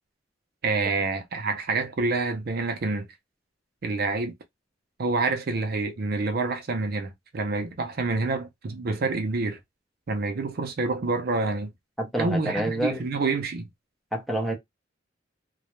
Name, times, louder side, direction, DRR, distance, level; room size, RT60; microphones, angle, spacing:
voice 1, 0.6-3.1 3.8-4.3 5.0-9.6 10.1-11.7 12.2-13.7, right 3 dB, 55° right, 0.5 m, -27 dB
voice 2, 12.0-13.0 14.1-14.6, right 1 dB, ahead, 0.5 m, -27 dB
2.3 x 2.0 x 2.9 m
head